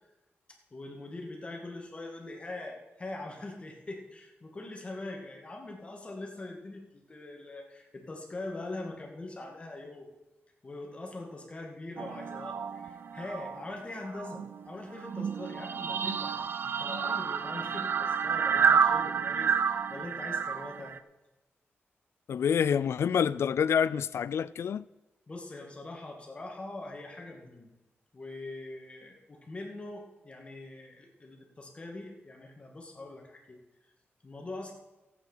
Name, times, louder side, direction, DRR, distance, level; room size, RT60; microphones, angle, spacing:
voice 1, 0.5-10.1 10.6-20.9 25.3-27.7 28.1-33.9 34.2-34.7, left 2 dB, 25° left, 2.1 m, -42 dB
sound 1, 12.0-13.7 14.0-21.0, right 6 dB, 55° right, 0.5 m, -30 dB
voice 2, 22.3-24.8, left 7 dB, 75° left, 0.4 m, -27 dB
14.0 x 8.5 x 5.7 m
wide cardioid pair, 175°, 4 cm